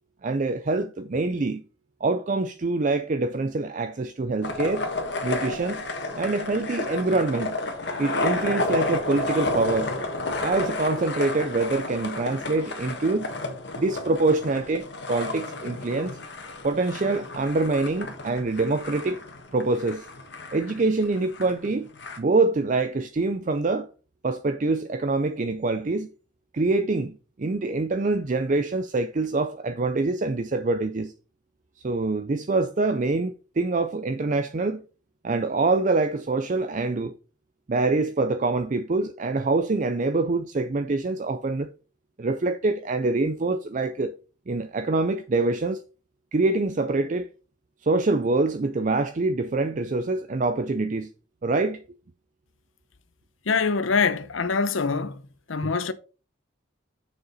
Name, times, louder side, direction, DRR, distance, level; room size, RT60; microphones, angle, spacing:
voice 1, 0.2-1.6 2.0-4.9 5.2-5.8 6.1-7.6 8.0-9.9 10.4-13.3 13.8-16.2 16.6-19.2 19.5-20.1 20.5-21.9 22.2-23.9 24.2-26.1 26.5-31.1 31.8-34.8 35.2-37.1 37.7-41.7 42.2-44.1 44.5-45.8 46.3-47.3 47.8-51.1 51.4-51.8, right 3 dB, 40° right, 0.4 m, -25 dB
sound 1, 4.4-22.2, left 2 dB, 60° left, 1.6 m, -31 dB
voice 2, 53.5-55.2 55.5-55.9, left 5 dB, 85° left, 0.8 m, -24 dB
6.8 x 6.7 x 4.0 m
head